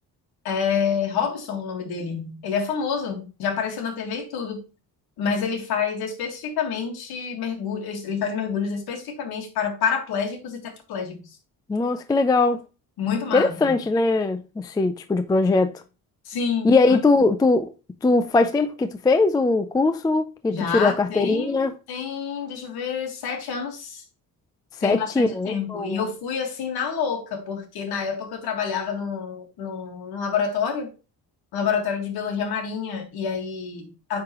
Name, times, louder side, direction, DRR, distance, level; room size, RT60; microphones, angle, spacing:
voice 1, 0.4-4.6 5.2-11.2 13.0-13.8 16.3-17.0 20.5-24.0 24.8-30.9 31.5-34.2, left 6 dB, 90° left, 1.8 m, -28 dB
voice 2, 11.7-12.6 13.3-15.8 16.6-17.7 18.0-21.7 24.8-26.0, left 3 dB, 10° left, 0.3 m, -21 dB
9.2 x 3.9 x 3.0 m
cardioid pair, 135°, 37 cm